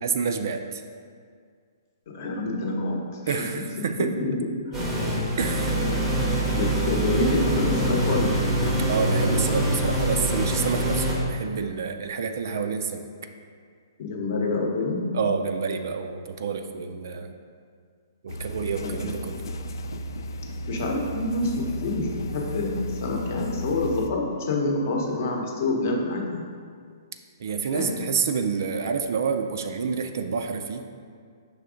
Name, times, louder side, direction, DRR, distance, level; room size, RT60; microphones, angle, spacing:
voice 1, 0.0-0.8 3.3-4.1 5.4-5.8 8.9-13.1 15.1-17.3 18.2-19.4 27.4-30.9, right 6 dB, 50° right, 6 dB, 0.3 m, -28 dB
voice 2, 2.1-3.4 3.8-4.4 4.7-4.9 5.7-6.0 6.5-8.5 14.0-15.0 18.8-19.1 20.7-26.4 27.7-27.9, left 2 dB, 40° left, 0 dB, 0.8 m, -27 dB
sound 1, 4.7-11.2, right 1 dB, 5° right, 0.7 m, -24 dB
sound 2, 18.3-24.1, equal, 70° left, 0.3 m, -34 dB
5.6 x 3.5 x 5.0 m, 2.1 s
hypercardioid pair, 175°, 2 cm